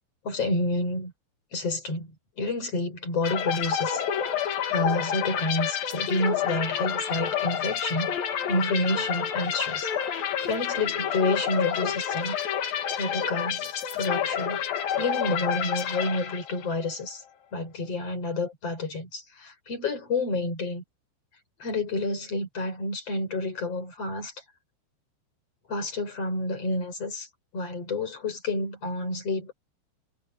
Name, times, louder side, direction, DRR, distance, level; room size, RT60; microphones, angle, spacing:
voice 1, 0.2-1.1 1.5-8.1 8.5-9.9 10.2-12.4 12.9-13.7 13.9-17.2 17.5-20.8 21.6-24.3 25.7-27.3 27.5-29.5, left 2 dB, 30° left, 6.5 m, -29 dB
sound 1, 3.2-16.8, left 8 dB, 55° left, 3.5 m, -29 dB
omnidirectional pair, 5.6 m